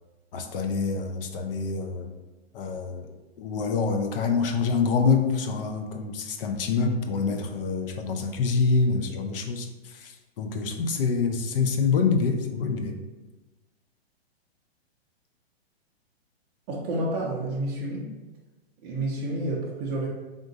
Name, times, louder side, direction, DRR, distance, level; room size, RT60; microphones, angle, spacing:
voice 1, 0.3-2.1 2.5-3.1 3.4-13.0, left 4 dB, 60° left, 5 dB, 0.6 m, -26 dB
voice 2, 16.7-18.1 18.8-20.1, right 1 dB, 25° right, -5 dB, 0.4 m, -29 dB
3.7 x 2.5 x 3.8 m, 1.2 s
hypercardioid pair, 140°, 32 cm